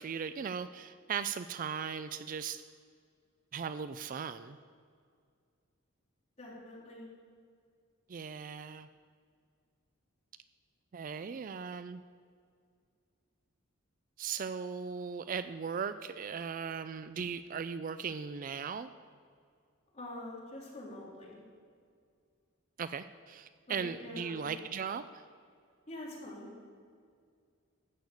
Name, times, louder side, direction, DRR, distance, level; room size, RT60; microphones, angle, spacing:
voice 1, 0.0-2.6 3.5-4.6 8.1-8.9 10.9-12.0 14.2-18.9 22.8-25.2, right 6 dB, 40° right, 12 dB, 0.3 m, -38 dB
voice 2, 6.4-7.1 19.9-21.4 23.7-24.6 25.9-26.5, left 1 dB, 35° left, -4 dB, 3.5 m, -45 dB
14.0 x 6.6 x 8.4 m, 2.2 s
head